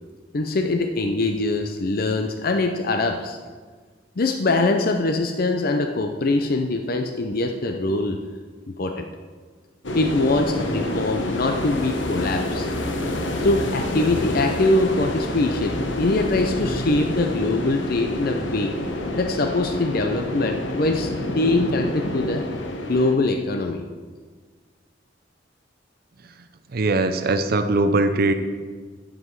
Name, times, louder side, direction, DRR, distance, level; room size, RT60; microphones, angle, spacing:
voice 1, 0.3-3.4 4.2-8.2 8.7-9.0 9.9-12.7 13.4-18.8 19.2-21.1 21.3-22.4 22.9-23.8, left 2 dB, 50° left, 5 dB, 0.6 m, -23 dB
sound 1, 9.8-23.1, left 1 dB, 80° left, 1.1 m, -28 dB
voice 2, 26.7-28.3, right 2 dB, 55° right, 8 dB, 0.5 m, -20 dB
11.0 x 7.6 x 4.7 m, 1.5 s
head